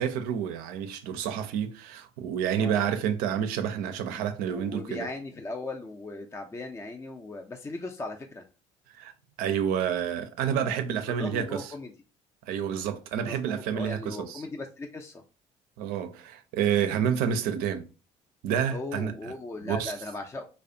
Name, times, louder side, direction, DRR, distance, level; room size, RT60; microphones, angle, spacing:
voice 1, 0.0-5.1 8.9-9.1 9.4-11.7 12.5-14.4 15.8-17.9 18.4-19.1 19.6-19.9, right 8 dB, 70° right, 0.4 m, -29 dB
voice 2, 4.5-8.5 11.1-11.9 13.2-15.2 18.7-20.5, left 2 dB, 20° left, 0.4 m, -38 dB
2.3 x 2.1 x 2.6 m
hypercardioid pair, 60°, 16 cm